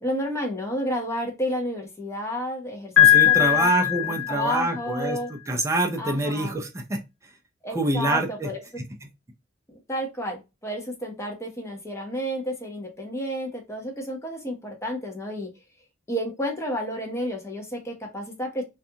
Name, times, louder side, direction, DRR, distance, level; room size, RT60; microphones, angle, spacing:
voice 1, 0.0-2.9 3.3-3.7 4.1-5.3 6.0-6.5 7.6-8.6 9.9-15.5 16.1-18.6, equal, 15° left, 1 dB, 0.7 m, -31 dB
Piano, 3.0-4.9, left 12 dB, 70° left, 1.3 m, -19 dB
voice 2, 3.0-7.0 7.7-8.5, right 2 dB, 15° right, 3 dB, 0.4 m, -26 dB
2.5 x 2.3 x 2.7 m, 0.25 s
head